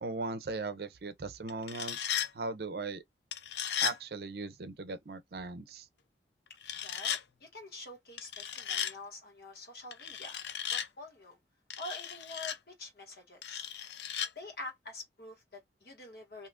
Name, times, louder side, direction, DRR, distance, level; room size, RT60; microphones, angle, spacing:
voice 1, 0.0-3.0 3.8-5.9, right 3 dB, 60° right, 0.5 m, -38 dB
sound 1, 1.5-2.3 3.3-4.0 6.6-7.2 8.2-8.9 9.9-10.9 11.7-12.6 13.4-14.3, left 9 dB, 80° left, 0.4 m, -35 dB
voice 2, 6.8-10.4 10.7-11.4 11.8-13.6 14.3-16.5, left 2 dB, 60° left, 1.3 m, -46 dB
2.8 x 2.4 x 3.5 m
head